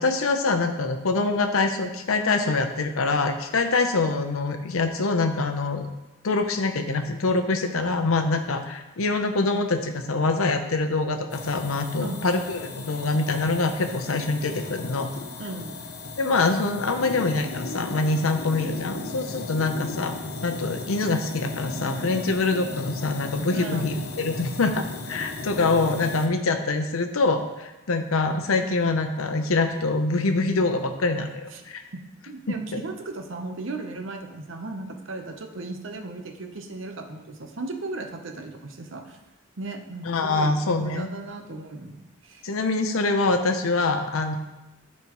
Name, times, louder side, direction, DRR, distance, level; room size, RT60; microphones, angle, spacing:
voice 1, 0.0-5.9 6.2-15.1 16.2-31.8 32.5-32.8 40.0-41.1 42.4-44.4, left 3 dB, 85° left, 7 dB, 0.7 m, -25 dB
sound 1, 11.3-26.3, left 3 dB, 50° left, 0.7 m, -36 dB
voice 2, 15.4-15.8 23.5-23.9 31.5-31.7 32.3-39.2 39.6-42.5, right 2 dB, 65° right, 4 dB, 0.8 m, -36 dB
11.5 x 4.3 x 3.0 m, 1.0 s
head